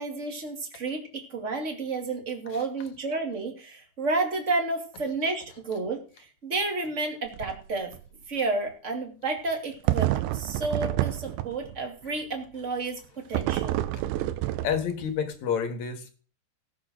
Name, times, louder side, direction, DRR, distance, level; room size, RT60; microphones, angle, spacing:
voice 1, 0.0-7.9 8.3-13.8, right 3 dB, 25° right, 2 dB, 1.8 m, -31 dB
sound 1, 7.3-7.6 7.9-8.0 9.9-11.8 13.3-15.1, right 15 dB, 85° right, 3.0 m, -28 dB
voice 2, 14.6-16.1, left 7 dB, 55° left, 8 dB, 2.3 m, -29 dB
18.0 x 6.2 x 6.3 m, 0.40 s
omnidirectional pair, 5.1 m